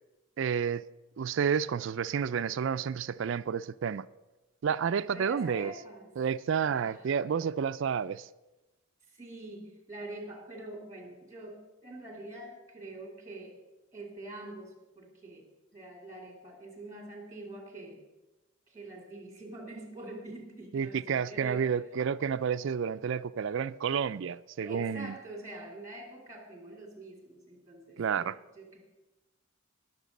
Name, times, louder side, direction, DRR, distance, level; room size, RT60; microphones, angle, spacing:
voice 1, 0.4-0.8 1.2-4.1 4.6-5.7 6.2-8.3 20.7-25.1 28.0-28.4, right 7 dB, 60° right, 0.3 m, -30 dB
voice 2, 5.1-6.1 6.6-7.1 9.1-13.5 13.9-18.0 18.7-21.7 24.6-28.8, right 1 dB, 15° right, 2.6 m, -45 dB
18.5 x 6.6 x 5.3 m
head